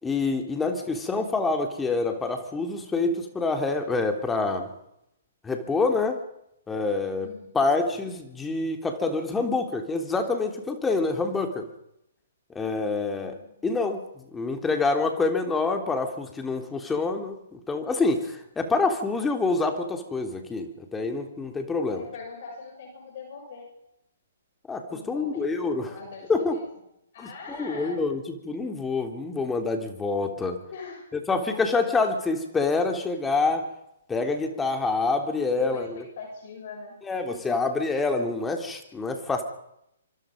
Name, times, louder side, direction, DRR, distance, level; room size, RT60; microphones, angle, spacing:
voice 1, 0.0-4.7 5.4-6.2 6.7-11.7 12.6-13.4 13.6-22.1 24.7-25.9 26.3-26.6 27.2-30.6 31.3-33.7 34.1-36.0 37.1-39.4, left 3 dB, 10° left, 5 dB, 3.4 m, -27 dB
voice 2, 7.2-7.6 13.2-13.7 21.8-23.7 24.9-26.6 27.1-28.0 30.7-31.6 35.5-36.9, left 4 dB, 55° left, 1 dB, 7.3 m, -42 dB
25.5 x 25.5 x 5.4 m, 0.80 s
figure-of-eight pair, 125°, 0 cm